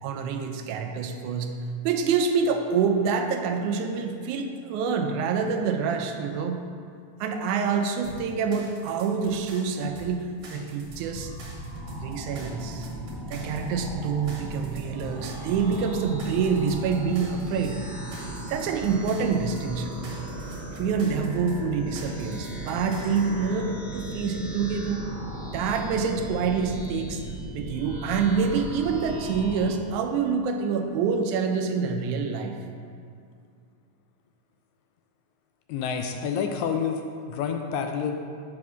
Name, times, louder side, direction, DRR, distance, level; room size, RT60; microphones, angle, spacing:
voice 1, 0.0-1.6 1.8-6.7 7.2-11.3 12.0-12.9 13.3-17.8 18.5-20.0 20.7-25.0 25.5-27.2 27.6-32.6, right 5 dB, 80° right, 5 dB, 2.0 m, -26 dB
sound 1, 8.0-23.4, equal, 60° right, 2.3 m, -45 dB
sound 2, 10.8-29.7, right 1 dB, 15° left, 1.2 m, -37 dB
voice 2, 35.7-37.0 37.3-38.1, left 7 dB, 80° left, 4 dB, 1.8 m, -28 dB
8.5 x 3.7 x 6.0 m, 2.3 s
omnidirectional pair, 3.5 m